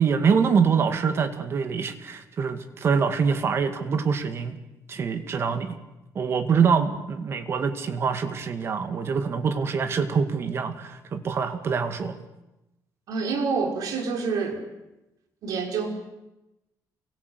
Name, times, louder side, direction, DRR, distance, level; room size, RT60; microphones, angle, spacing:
voice 1, 0.0-4.6 4.9-5.8 6.2-12.2, right 6 dB, 40° right, 9 dB, 2.2 m, -25 dB
voice 2, 13.1-14.6 15.4-15.9, right 5 dB, 65° right, 4 dB, 5.5 m, -27 dB
29.0 x 24.5 x 8.1 m, 0.97 s
cardioid pair, 165°, 7 cm